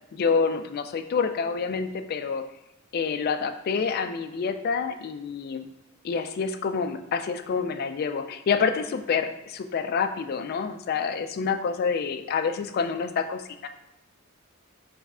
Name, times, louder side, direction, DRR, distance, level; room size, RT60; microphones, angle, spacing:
voice 1, 0.1-2.4 2.9-5.7 6.0-13.7, left 5 dB, 50° left, 8 dB, 0.3 m, -27 dB
3.5 x 3.1 x 3.6 m, 0.85 s
head